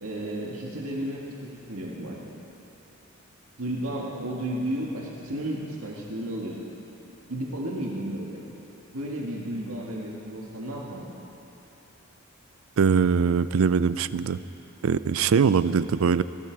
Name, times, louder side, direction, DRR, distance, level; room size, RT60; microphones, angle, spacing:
voice 1, 0.0-2.2 3.6-6.6 7.3-8.4 8.9-11.0, right 1 dB, 90° right, -3 dB, 1.9 m, -33 dB
voice 2, 12.8-14.4 14.8-16.2, right 6 dB, 70° right, 15 dB, 0.4 m, -22 dB
19.5 x 13.0 x 4.7 m, 3.0 s
head